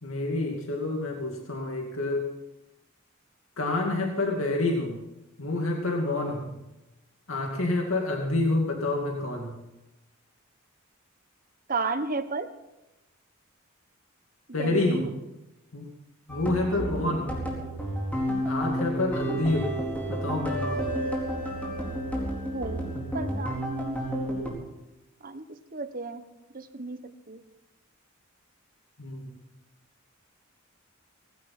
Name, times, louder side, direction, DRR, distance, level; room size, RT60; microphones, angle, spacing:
voice 1, 0.0-2.3 3.6-5.0 5.4-6.6 7.3-9.6 14.5-15.1 15.7-15.9 16.3-17.4 18.4-19.7 20.1-20.9 29.0-29.3, left 2 dB, 85° left, 1 dB, 2.4 m, -28 dB
voice 2, 11.7-12.5 14.6-15.1 22.5-22.8 23.1-24.0 25.2-25.4 25.7-26.2 26.5-27.0 27.3-27.4, right 3 dB, 45° right, 9 dB, 1.2 m, -32 dB
sound 1, 16.3-24.5, equal, 10° left, 4.4 m, -31 dB
18.5 x 16.0 x 4.4 m, 0.96 s
head